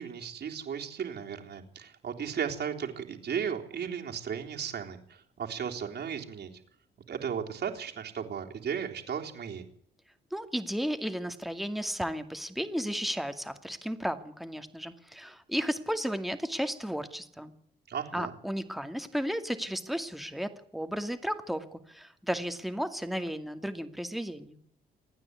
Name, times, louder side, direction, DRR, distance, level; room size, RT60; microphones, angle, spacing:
voice 1, 0.0-6.5 7.1-9.7 17.9-18.3, right 7 dB, 55° right, 2 dB, 3.6 m, -35 dB
voice 2, 10.3-17.5 18.1-24.6, equal, ahead, 8 dB, 2.3 m, -34 dB
28.0 x 9.8 x 9.7 m, 0.70 s
cardioid pair, 90°, 20 cm